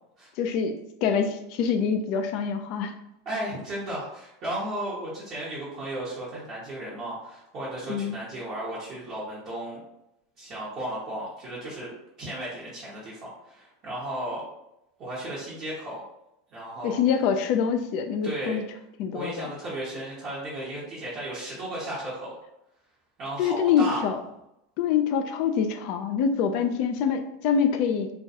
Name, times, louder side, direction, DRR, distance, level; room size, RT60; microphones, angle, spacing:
voice 1, 0.4-2.9 7.9-8.2 16.8-18.6 19.0-19.5 23.4-24.2 24.8-28.1, left 7 dB, 55° left, 7 dB, 0.3 m, -25 dB
voice 2, 3.2-9.8 10.4-11.9 12.2-14.4 15.0-16.0 16.5-17.0 18.2-18.6 19.1-22.4 23.2-24.0, right 1 dB, 45° right, -7 dB, 0.8 m, -34 dB
2.3 x 2.2 x 2.7 m, 0.82 s
hypercardioid pair, 90°, 0 cm